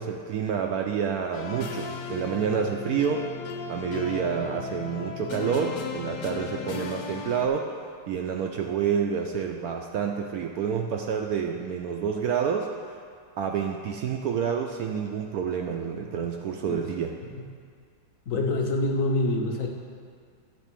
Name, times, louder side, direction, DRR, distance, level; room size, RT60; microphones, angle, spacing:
voice 1, 0.0-3.3 3.7-7.7 8.1-12.7 13.4-17.2, right 7 dB, 75° right, 2 dB, 0.8 m, -28 dB
sound 1, 1.3-7.5, left 6 dB, 85° left, 1.5 m, -36 dB
voice 2, 18.3-19.7, left 2 dB, 55° left, 1 dB, 1.1 m, -26 dB
9.9 x 3.8 x 7.4 m, 2.2 s
omnidirectional pair, 2.0 m